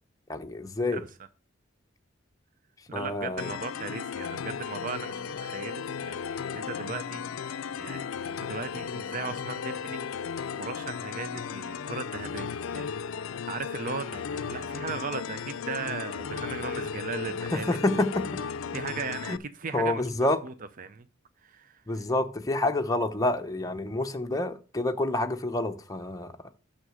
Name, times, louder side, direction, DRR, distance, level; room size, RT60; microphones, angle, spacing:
voice 1, 0.3-1.0 2.9-3.5 17.5-18.4 19.3-19.4 19.7-20.4 21.9-26.3, left 2 dB, 15° left, 0.8 m, -28 dB
voice 2, 2.9-10.1 10.6-12.9 13.2-17.8 18.7-20.0 20.4-21.1 21.4-22.0, right 5 dB, 45° right, 0.5 m, -38 dB
sound 1, 3.4-19.4, left 6 dB, 85° left, 0.4 m, -35 dB
6.5 x 6.3 x 6.3 m
head